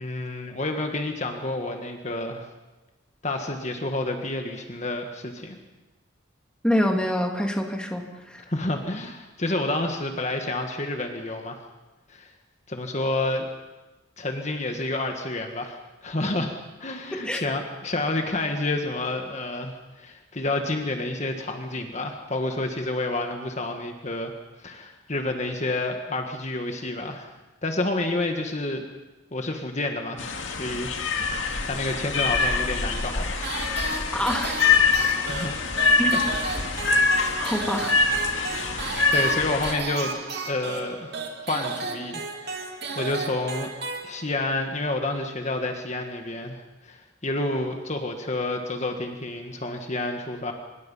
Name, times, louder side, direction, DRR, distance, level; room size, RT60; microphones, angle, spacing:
voice 1, 0.0-2.5 3.2-5.6 8.5-11.6 12.1-12.3 12.7-13.5 14.2-16.5 16.8-24.3 24.6-27.3 27.6-28.8 29.3-30.9 31.3-33.4 35.1-35.5 39.1-40.2 40.5-41.1 41.4-42.7 42.9-43.7 44.0-50.5, left 2 dB, 35° left, 4 dB, 1.7 m, -29 dB
voice 2, 6.6-8.5 17.1-17.4 34.1-34.6 36.0-36.2 37.4-38.1, equal, 5° left, 2 dB, 2.2 m, -26 dB
sound 1, 30.2-39.7, left 4 dB, 75° left, 2.1 m, -24 dB
sound 2, 33.4-44.5, right 4 dB, 55° right, 2.6 m, -34 dB
25.5 x 21.5 x 5.7 m, 1.1 s
head